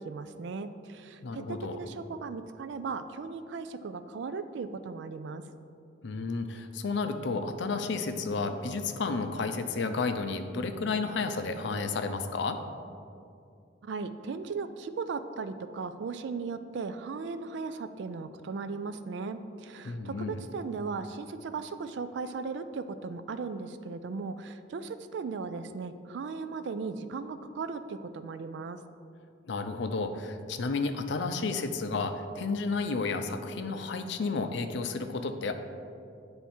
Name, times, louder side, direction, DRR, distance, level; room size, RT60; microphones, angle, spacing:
voice 1, 0.0-5.4 13.8-28.8, right 4 dB, 65° right, 11 dB, 0.3 m, -37 dB
voice 2, 1.2-1.8 6.0-12.6 19.8-20.4 29.5-35.5, left 4 dB, 65° left, 7 dB, 0.5 m, -32 dB
9.7 x 3.5 x 4.3 m, 2.5 s
head